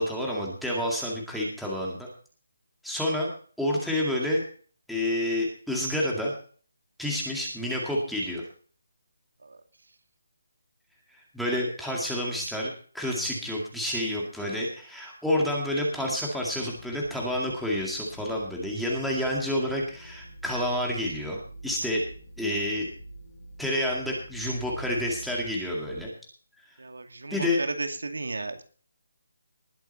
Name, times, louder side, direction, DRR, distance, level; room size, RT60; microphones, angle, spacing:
voice 1, 0.0-2.1 2.8-3.3 3.6-4.4 4.9-6.3 7.0-8.4 11.3-22.0 22.4-22.9 23.6-26.1 27.3-27.6, left 1 dB, ahead, -4 dB, 2.2 m, -29 dB
sound 1, 16.4-26.0, right 2 dB, 30° left, 5.6 m, -46 dB
voice 2, 26.8-28.6, right 3 dB, 85° right, 7 dB, 2.3 m, -34 dB
19.5 x 8.1 x 4.2 m, 0.42 s
hypercardioid pair, 175°, 0 cm